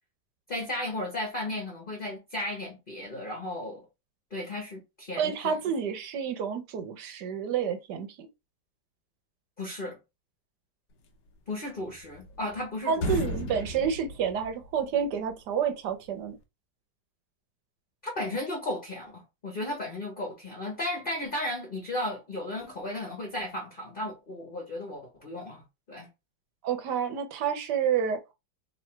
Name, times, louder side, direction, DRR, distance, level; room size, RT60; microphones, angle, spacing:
voice 1, 0.5-3.8 4.3-5.6 9.6-10.0 11.5-13.3 18.0-26.1, left 1 dB, 30° left, 1.2 m, -35 dB
voice 2, 5.2-8.3 12.9-16.4 26.6-28.2, right 7 dB, 65° right, 1.3 m, -29 dB
sound 1, 11.8-12.6 12.9-15.0, left 1 dB, 75° left, 1.5 m, -34 dB
3.4 x 3.1 x 4.5 m
omnidirectional pair, 2.0 m